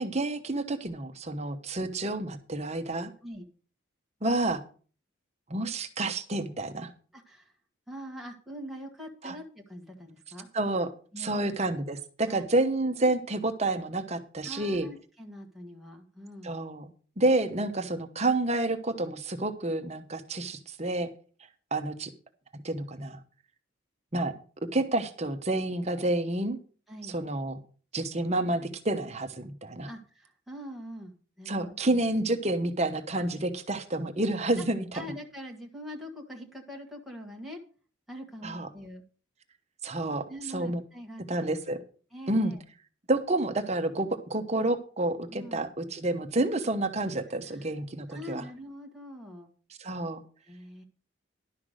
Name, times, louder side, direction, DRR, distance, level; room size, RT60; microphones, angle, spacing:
voice 1, 0.0-3.1 4.2-4.6 5.5-6.9 9.2-9.4 10.5-10.9 11.2-14.9 16.4-16.9 17.2-21.1 21.7-22.1 22.5-23.2 24.1-24.3 24.7-26.6 27.0-27.6 27.9-29.9 31.5-35.0 38.4-38.7 39.8-40.2 40.5-40.8 41.3-41.8 42.3-42.5 43.1-48.4 49.8-50.2, right 2 dB, 30° right, 8 dB, 1.0 m, -29 dB
voice 2, 7.1-7.6 7.9-10.5 11.1-11.6 12.3-12.5 14.4-16.5 26.9-27.2 29.8-32.0 33.1-33.2 34.6-34.7 34.9-37.6 38.1-39.0 40.3-41.5 42.1-42.6 45.3-45.6 47.3-47.7 48.1-49.5 50.4-50.8, equal, ahead, -1 dB, 1.5 m, -43 dB
11.5 x 5.8 x 6.4 m, 0.40 s
head